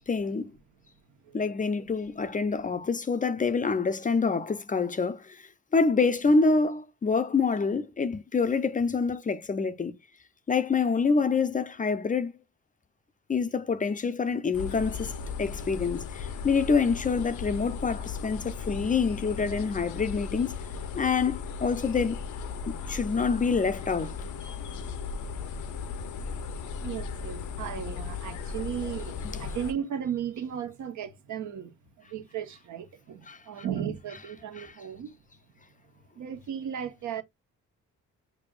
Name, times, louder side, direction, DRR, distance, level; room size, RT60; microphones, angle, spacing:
voice 1, 0.1-0.5 1.3-9.9 10.5-12.3 13.3-15.1 15.4-20.6 21.0-22.2 22.7-24.2 33.3-33.4 34.6-34.7, left 4 dB, 25° left, 0.5 m, -26 dB
voice 2, 1.2-1.5 26.6-31.7 32.0-35.1 36.1-37.2, right 9 dB, 70° right, 1.1 m, -35 dB
sound 1, 14.5-29.7, left 5 dB, 75° left, 0.8 m, -36 dB
6.1 x 3.4 x 2.4 m
cardioid pair, 90°, 30 cm